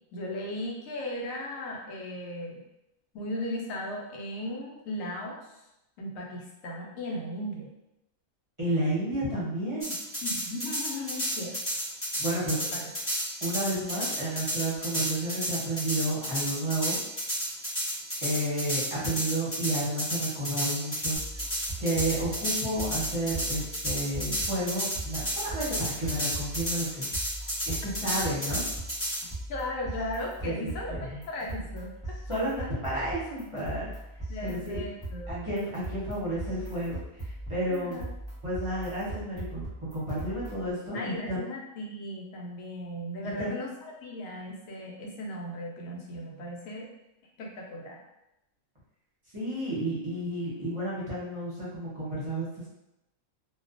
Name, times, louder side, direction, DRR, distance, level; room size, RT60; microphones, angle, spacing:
voice 1, 0.1-2.6 3.1-5.4 6.0-7.7 10.2-11.6 12.4-12.9 29.5-31.0 31.3-32.2 32.6-32.7 34.3-35.5 37.7-38.0 40.9-46.9 47.4-48.0, left 1 dB, 80° left, -1 dB, 1.0 m, -37 dB
voice 2, 8.6-9.9 12.2-12.6 13.4-17.0 18.2-21.2 21.8-27.1 27.7-28.6 30.4-31.2 32.3-33.9 34.4-34.8 35.3-38.0 38.4-39.6 39.9-41.4 43.2-43.6 49.3-52.7, right 1 dB, 30° right, -9 dB, 0.7 m, -31 dB
sound 1, 9.8-29.2, equal, 20° left, 0.4 m, -31 dB
sound 2, 21.1-40.7, right 1 dB, 5° left, 0.8 m, -40 dB
2.4 x 2.2 x 2.5 m, 0.89 s
omnidirectional pair, 1.4 m